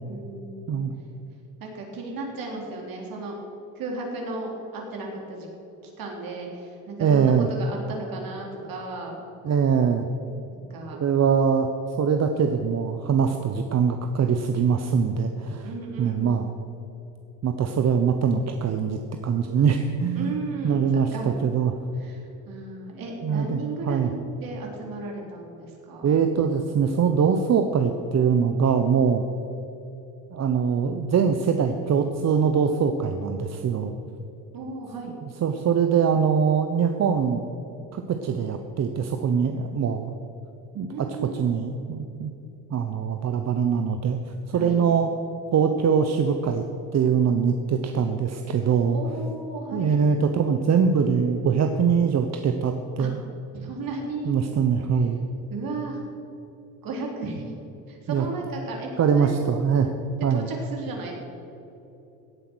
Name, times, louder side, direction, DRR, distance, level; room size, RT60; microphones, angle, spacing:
voice 1, 0.1-0.8 1.6-3.4 3.8-5.5 5.8-9.2 10.5-11.0 15.6-16.3 20.1-21.3 22.0-26.1 34.5-35.2 40.9-41.5 44.5-44.8 48.9-50.0 53.0-53.1 53.5-54.3 55.5-56.0 56.8-57.5 57.9-59.3 60.3-61.1, right 3 dB, 60° right, 0 dB, 3.8 m, -34 dB
voice 2, 7.0-7.5 9.4-10.1 11.0-11.7 12.0-15.7 16.0-16.5 17.4-20.3 20.6-21.7 23.2-23.6 23.9-24.1 26.0-29.2 30.3-33.9 35.4-37.4 37.9-40.2 40.7-41.1 41.3-42.3 42.7-44.2 44.5-45.1 45.5-46.6 46.9-49.0 49.7-53.2 54.3-55.2 58.1-58.2 59.0-59.9 60.2-60.5, right 6 dB, 40° right, 6 dB, 1.0 m, -23 dB
17.0 x 8.5 x 6.3 m, 2.9 s
supercardioid pair, 80°, 38 cm